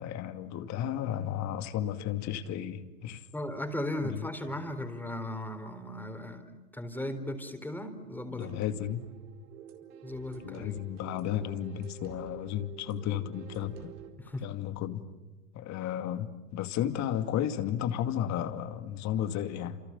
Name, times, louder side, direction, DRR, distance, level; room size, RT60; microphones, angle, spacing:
voice 1, 0.0-3.2 4.0-4.3 8.3-9.0 10.4-13.9 14.4-15.0 15.5-19.8, left 10 dB, 35° left, 2.4 m, -33 dB
voice 2, 3.3-8.5 10.0-10.7 14.2-14.4, left 1 dB, 5° left, 3.9 m, -37 dB
sound 1, 8.4-14.1, right 9 dB, 70° right, 4.7 m, -49 dB
29.5 x 28.0 x 7.2 m
hypercardioid pair, 120°, 46 cm